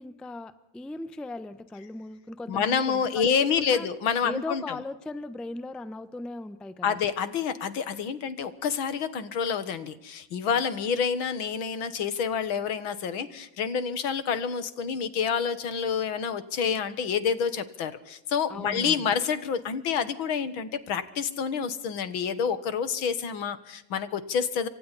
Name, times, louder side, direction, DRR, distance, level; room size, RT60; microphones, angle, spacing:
voice 1, 0.0-3.9 4.2-7.0 18.5-19.1, left 2 dB, ahead, 12 dB, 0.7 m, -38 dB
voice 2, 2.5-4.6 6.8-24.7, left 6 dB, 80° left, 13 dB, 2.3 m, -28 dB
28.0 x 25.0 x 4.2 m, 0.82 s
omnidirectional pair, 2.2 m